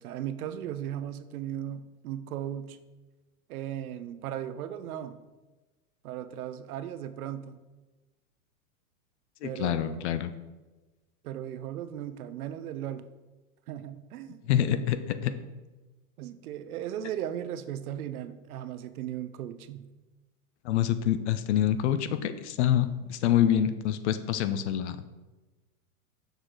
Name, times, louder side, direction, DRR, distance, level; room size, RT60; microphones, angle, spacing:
voice 1, 0.0-2.8 3.5-5.2 6.0-7.6 9.4-10.1 11.2-13.0 13.7-14.6 16.2-19.9, right 10 dB, 75° right, 12 dB, 0.6 m, -37 dB
voice 2, 9.4-10.3 14.5-15.3 20.6-25.0, left 10 dB, 50° left, 12 dB, 0.5 m, -26 dB
6.5 x 4.7 x 3.9 m, 1.2 s
supercardioid pair, 150°, 45 cm